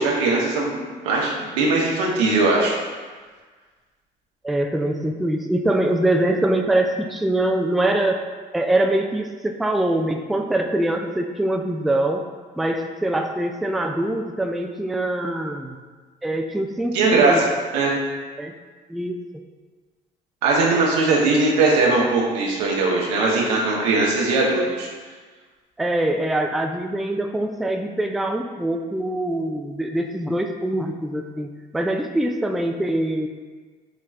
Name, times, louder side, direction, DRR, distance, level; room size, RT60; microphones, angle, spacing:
voice 1, 0.0-2.8 16.9-17.5 17.7-17.9 20.4-24.9, right 3 dB, 85° right, -2 dB, 0.7 m, -20 dB
voice 2, 4.4-8.2 8.5-12.3 12.6-15.8 16.2-17.4 18.4-18.5 18.9-19.2 25.8-31.5 31.7-33.3, right 1 dB, ahead, 4 dB, 0.3 m, -23 dB
5.0 x 3.1 x 2.3 m, 1.4 s
hypercardioid pair, 55°, 21 cm